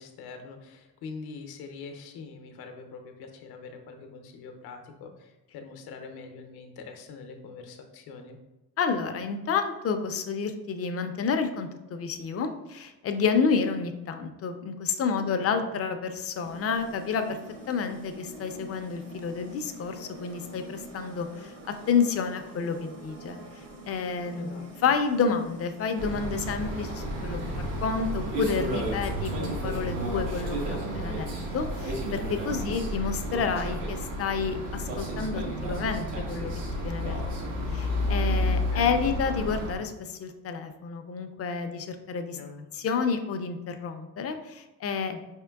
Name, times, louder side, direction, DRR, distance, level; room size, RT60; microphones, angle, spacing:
voice 1, 0.0-8.4 15.1-15.6 24.3-24.9 32.5-32.8 38.7-38.9 42.3-42.6 45.1-45.2, left 4 dB, 70° left, 5 dB, 0.7 m, -43 dB
voice 2, 8.8-17.4 17.7-21.5 21.9-23.4 23.9-36.5 36.8-42.4 42.7-45.2, left 5 dB, 40° left, 7 dB, 0.5 m, -30 dB
sound 1, 16.4-30.8, right 1 dB, 60° right, 1.2 m, -46 dB
sound 2, 26.0-39.7, equal, 80° right, 1.1 m, -31 dB
4.3 x 3.6 x 2.3 m, 1.1 s
cardioid pair, 90°, 38 cm